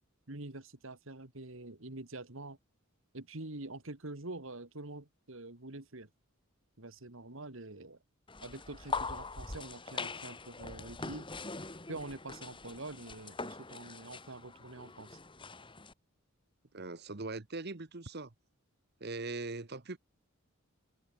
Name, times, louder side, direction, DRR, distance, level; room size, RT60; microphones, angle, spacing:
voice 1, 0.3-2.6 3.1-6.1 6.8-8.0 8.4-11.3 11.9-15.2, right 2 dB, 65° right, 2.0 m, -45 dB
sound 1, 8.3-15.9, left 4 dB, 25° left, 2.8 m, -42 dB
voice 2, 16.7-18.3 19.0-20.0, right 3 dB, 45° right, 1.2 m, -40 dB
head